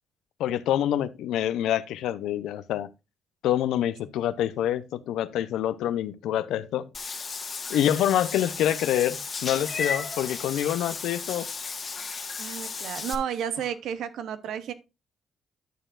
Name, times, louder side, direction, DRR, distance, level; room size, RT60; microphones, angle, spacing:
voice 1, 0.4-2.9 3.4-6.9 7.7-11.5, left 11 dB, 85° left, 0.6 m, -26 dB
Meow / Water / Bathtub (filling or washing), 6.9-13.1, left 5 dB, 35° left, 1.4 m, -34 dB
voice 2, 12.4-14.7, right 8 dB, 80° right, 0.8 m, -32 dB
11.0 x 6.8 x 2.4 m
cardioid pair, 90°, 0 cm